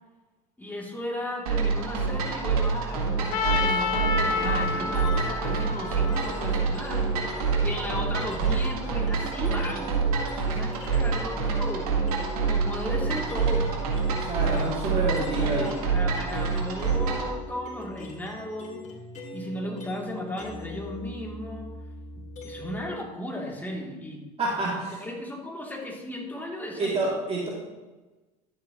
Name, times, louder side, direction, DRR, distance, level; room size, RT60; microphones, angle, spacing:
voice 1, 0.6-7.1 7.6-9.9 10.4-12.0 12.5-13.8 14.4-18.8 19.3-21.7 22.4-24.2 24.6-27.1, left 1 dB, 10° left, -2 dB, 2.9 m, -35 dB
sound 1, 1.5-17.3, right 5 dB, 85° right, 1.8 m, -27 dB
Trumpet, 3.3-7.4, left 5 dB, 85° left, 1.1 m, -30 dB
sound 2, 3.7-5.4 6.1-11.2 11.5-22.9, left 1 dB, 40° left, 2.5 m, -42 dB
voice 2, 14.1-15.7 24.4-25.0 26.8-27.5, right 2 dB, 35° right, -5 dB, 2.8 m, -28 dB
12.5 x 7.7 x 3.1 m, 1.2 s
hypercardioid pair, 80°, 19 cm